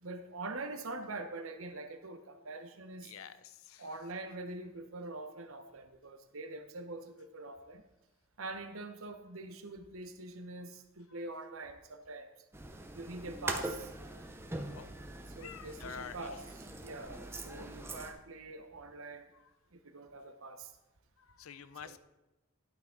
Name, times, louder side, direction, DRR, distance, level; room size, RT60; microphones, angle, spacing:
voice 1, 0.0-3.1 3.8-7.8 8.4-12.3 12.9-13.9 15.4-16.4 16.8-19.3 19.8-20.7 21.8-22.0, right 2 dB, 75° right, 8 dB, 0.8 m, -44 dB
voice 2, 3.0-3.9 11.1-11.3 14.7-14.9 15.4-16.5 19.3-19.5 21.2-22.0, left 7 dB, 80° left, 14 dB, 0.5 m, -49 dB
sound 1, 12.5-18.1, right 2 dB, 10° right, 0.6 m, -42 dB
11.5 x 6.0 x 3.8 m, 1.0 s
head